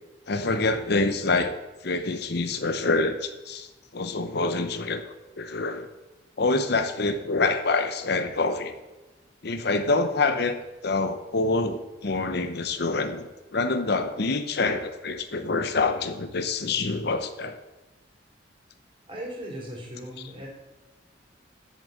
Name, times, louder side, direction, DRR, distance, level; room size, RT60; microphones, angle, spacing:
voice 1, 0.3-1.5 1.8-3.7 3.9-5.0 5.4-5.9 6.4-8.8 9.4-10.6 10.8-17.6, left 3 dB, 55° left, 9 dB, 0.8 m, -26 dB
voice 2, 19.1-20.5, equal, 25° right, -2 dB, 3.4 m, -37 dB
8.4 x 7.3 x 7.9 m, 1.1 s
head